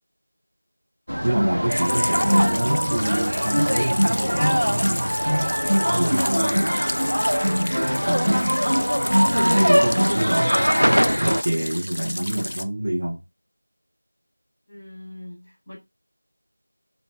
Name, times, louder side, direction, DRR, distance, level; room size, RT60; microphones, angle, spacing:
sound 1, 1.1-11.4, equal, 85° right, 0.3 m, -21 dB
voice 1, 1.2-5.1 5.9-6.9 8.0-8.6 9.4-13.2, right 1 dB, 30° right, 0.9 m, -27 dB
sound 2, 1.7-12.6, left 1 dB, 55° left, 0.4 m, -31 dB
voice 2, 14.7-15.8, left 1 dB, 5° left, 1.4 m, -41 dB
3.2 x 3.0 x 4.2 m
figure-of-eight pair, 175°, 0 cm